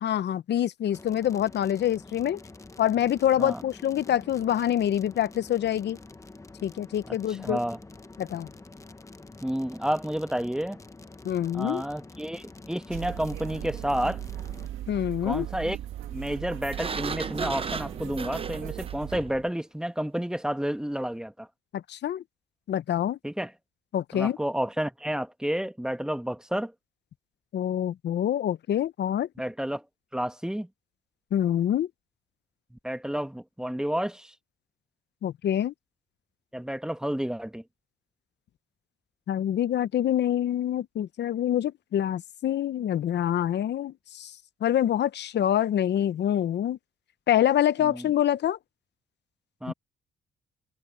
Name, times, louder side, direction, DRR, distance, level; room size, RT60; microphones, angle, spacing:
voice 1, 0.0-2.4 2.8-6.0 6.6-7.6 8.2-8.5 11.2-11.8 14.9-15.5 21.7-22.2 22.7-23.2 23.9-24.4 27.5-29.3 31.3-31.9 35.2-35.7 39.3-44.3 44.6-46.8 47.3-48.6 49.7-49.8, left 11 dB, 60° left, 0.8 m, -26 dB
sound 1, 0.9-14.7, left 3 dB, 15° left, 0.9 m, -47 dB
voice 2, 7.1-7.8 9.4-10.8 11.5-14.2 15.2-15.8 16.1-21.5 23.2-23.5 24.1-26.7 29.4-29.8 30.1-30.7 32.7-34.3 36.5-37.6 47.8-48.1 49.6-49.7, equal, 5° right, 1.2 m, -30 dB
sound 2, 12.9-19.2, right 12 dB, 80° right, 1.6 m, -38 dB
Sliding door, 16.7-19.5, right 5 dB, 30° right, 0.7 m, -35 dB
cardioid pair, 90°, 20 cm